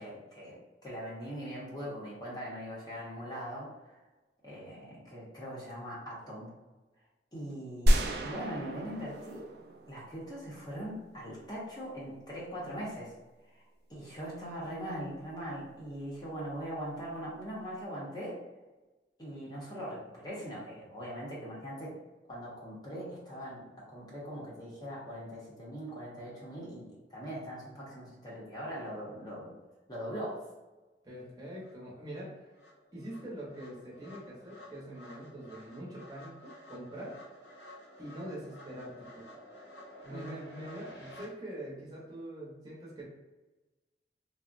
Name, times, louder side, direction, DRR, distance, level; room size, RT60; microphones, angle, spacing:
voice 1, 0.0-4.0 4.4-6.5 7.3-9.5 9.9-13.1 13.5-13.6 13.9-18.4 19.2-22.0 22.3-29.5 29.9-30.4 40.1-40.3, equal, 20° left, -6 dB, 0.7 m, -41 dB
sound 1, 7.9-10.8, equal, 60° right, 0.4 m, -30 dB
voice 2, 31.0-32.6 32.9-37.2 38.0-39.2 40.0-43.0, right 1 dB, 20° right, -6 dB, 0.7 m, -44 dB
sound 2, 31.2-31.3 31.6-41.3, equal, 70° left, 0.7 m, -52 dB
3.5 x 2.0 x 2.5 m, 1.2 s
head